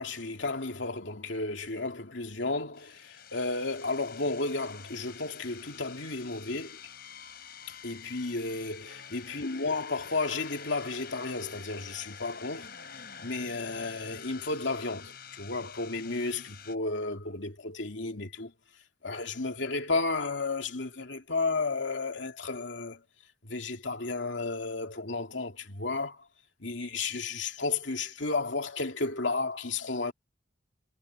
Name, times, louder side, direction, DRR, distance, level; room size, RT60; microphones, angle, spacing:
voice 1, 0.0-6.8 7.8-12.7 13.2-18.5 19.0-23.0 23.4-26.2 26.6-30.1, left 3 dB, 75° left, 2.6 m, -33 dB
sound 1, 2.7-16.7, left 7 dB, 50° left, 6.3 m, -47 dB
head